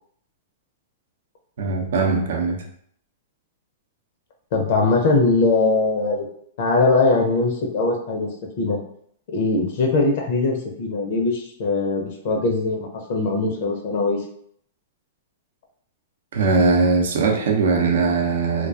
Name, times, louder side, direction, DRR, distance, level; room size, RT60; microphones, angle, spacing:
voice 1, 1.6-2.6 16.3-18.7, right 4 dB, 75° right, 2 dB, 0.5 m, -20 dB
voice 2, 4.5-6.3 6.6-8.3 8.6-8.8 9.3-14.2, left 3 dB, 60° left, 1 dB, 0.5 m, -21 dB
2.4 x 2.2 x 2.4 m, 0.66 s
hypercardioid pair, 120°, 0 cm